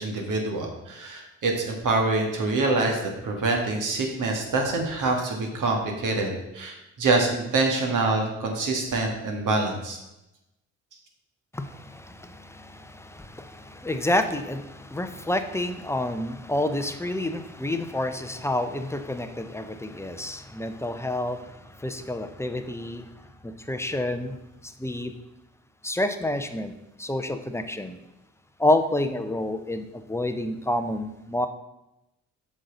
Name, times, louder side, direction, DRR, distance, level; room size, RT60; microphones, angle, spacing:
voice 1, 0.0-10.0, right 3 dB, 50° right, 2 dB, 1.9 m, -25 dB
voice 2, 11.5-23.1 23.4-24.4 24.6-25.1 25.8-26.7 27.0-28.0 28.6-31.5, left 1 dB, 5° left, 8 dB, 0.8 m, -29 dB
7.7 x 6.3 x 4.0 m, 0.92 s
figure-of-eight pair, 45°, 39 cm